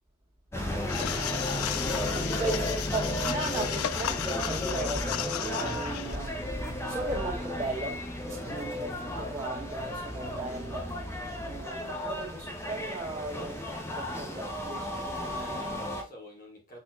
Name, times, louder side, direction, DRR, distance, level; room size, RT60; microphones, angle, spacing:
voice 1, 0.5-2.2 15.3-16.8, left 1 dB, 40° left, 1.1 m, -48 dB
sound 1, 0.5-16.0, left 1 dB, 10° left, 0.6 m, -34 dB
sound 2, 0.9-6.2, left 11 dB, 85° left, 0.3 m, -34 dB
voice 2, 1.9-11.0 11.4-15.6, right 2 dB, 15° right, 1.7 m, -37 dB
6.1 x 2.9 x 2.3 m
head